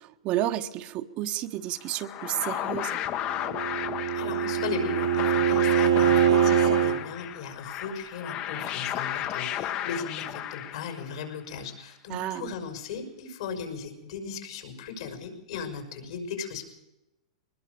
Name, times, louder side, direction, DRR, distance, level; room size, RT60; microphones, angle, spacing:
voice 1, 0.0-3.0 12.1-12.6, right 13 dB, 40° right, 8 dB, 1.2 m, -31 dB
sound 1, 1.9-11.2, left 11 dB, 40° left, 1.1 m, -33 dB
Bowed string instrument, 3.3-7.0, right 10 dB, 85° right, 2.1 m, -23 dB
voice 2, 4.1-16.6, left 6 dB, 70° left, 5 dB, 5.8 m, -37 dB
22.0 x 20.0 x 6.8 m, 0.96 s
hypercardioid pair, 125°, 3 cm